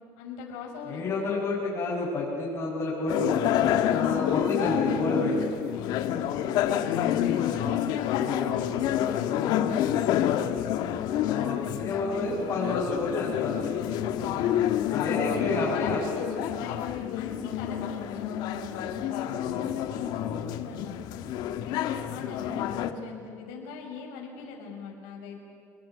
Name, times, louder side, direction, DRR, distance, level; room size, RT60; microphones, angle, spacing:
voice 1, 0.2-1.0 5.7-10.9 11.9-12.5 14.2-16.8 17.1-21.2 21.5-25.4, left 4 dB, 90° left, 0 dB, 6.0 m, -41 dB
voice 2, 0.9-5.4 7.4-7.7 8.2-8.4 11.3-13.7 14.9-16.0, left 2 dB, 40° left, -5 dB, 7.3 m, -30 dB
sound 1, 3.1-22.9, left 10 dB, 65° left, 1.7 m, -28 dB
27.5 x 21.5 x 9.6 m, 2.5 s
cardioid pair, 135°, 8 cm